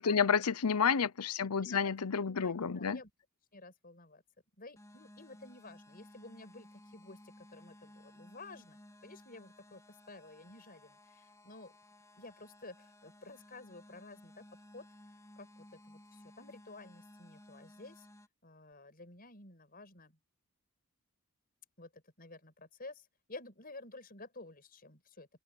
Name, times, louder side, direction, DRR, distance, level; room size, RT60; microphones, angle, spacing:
voice 1, 0.0-3.0, left 6 dB, 85° left, 0.7 m, -30 dB
voice 2, 1.4-1.9 2.2-3.1 3.5-4.2 4.6-11.8 12.1-14.4 14.7-14.9 15.4-18.1 18.4-20.1 21.8-25.3, left 2 dB, 40° left, 5.9 m, -52 dB
sound 1, 4.8-18.3, left 1 dB, 15° left, 4.6 m, -58 dB
open air
head